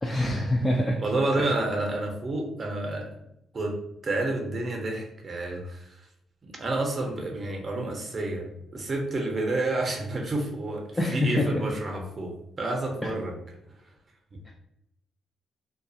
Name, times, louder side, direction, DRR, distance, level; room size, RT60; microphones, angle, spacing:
voice 1, 0.0-1.0 11.0-11.6, left 1 dB, 15° left, -1 dB, 0.4 m, -25 dB
voice 2, 1.0-3.1 3.5-3.7 4.0-6.0 6.4-13.4, right 2 dB, 35° right, 2 dB, 0.7 m, -29 dB
2.3 x 2.2 x 2.7 m, 0.81 s
cardioid pair, 90°, 0 cm